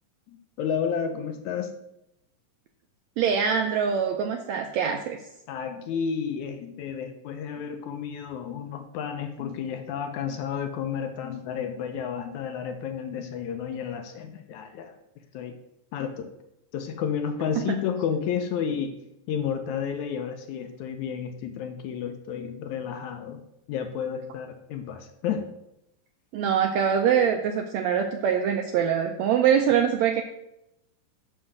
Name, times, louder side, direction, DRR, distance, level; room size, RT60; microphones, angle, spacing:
voice 1, 0.3-1.7 5.5-15.0 15.3-15.6 15.9-16.3 16.7-18.9 19.3-23.4 23.7-25.5, left 7 dB, 75° left, 6 dB, 1.9 m, -31 dB
voice 2, 3.2-5.2 17.6-17.7 26.3-30.2, right 8 dB, 90° right, 4 dB, 1.6 m, -23 dB
6.3 x 5.7 x 6.4 m, 0.83 s
omnidirectional pair, 3.8 m